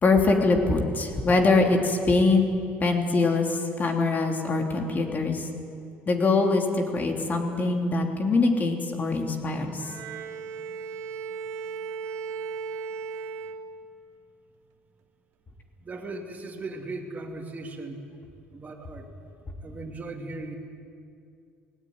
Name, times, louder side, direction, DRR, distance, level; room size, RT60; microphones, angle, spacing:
voice 1, 0.0-2.5 2.8-5.5 6.1-9.9, left 3 dB, 35° left, 2 dB, 3.1 m, -23 dB
Bowed string instrument, 9.8-14.2, right 5 dB, 70° right, 1.2 m, -36 dB
voice 2, 15.8-18.0 18.5-19.1 19.6-20.6, right 2 dB, 30° right, 0 dB, 2.6 m, -38 dB
18.5 x 17.5 x 9.7 m, 2.4 s
cardioid pair, 95°, 5 cm